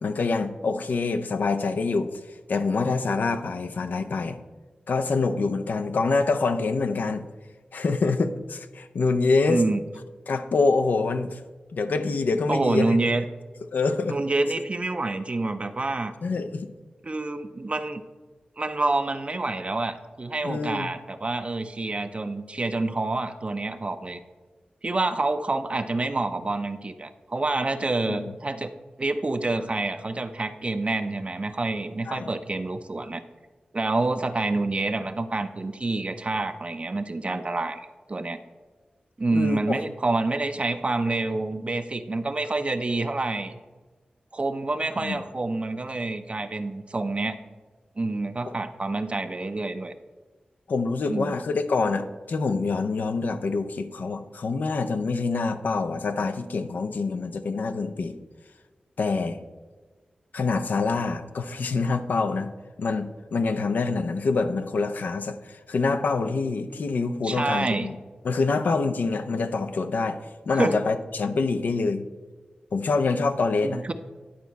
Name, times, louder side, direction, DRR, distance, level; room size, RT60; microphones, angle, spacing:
voice 1, 0.0-2.1 2.5-4.4 4.9-7.2 7.7-9.6 10.3-11.4 11.7-13.0 13.7-14.2 16.2-16.7 20.4-20.9 28.1-28.3 32.1-32.3 39.3-39.8 45.0-45.2 50.7-58.2 59.0-59.4 60.3-62.5 62.8-68.0 68.2-70.2 70.5-72.0 72.7-73.8, left 4 dB, 80° left, 9 dB, 0.5 m, -26 dB
voice 2, 9.4-9.8 12.5-13.2 14.1-16.1 17.0-18.0 18.6-24.2 24.8-28.7 29.0-33.2 33.7-38.4 39.2-43.5 44.3-47.4 48.0-49.9 51.1-51.3 67.2-67.9 70.6-70.7 73.6-73.9, right 2 dB, 40° right, 9 dB, 0.5 m, -27 dB
10.5 x 4.1 x 4.5 m, 1.3 s
cardioid pair, 50°, 3 cm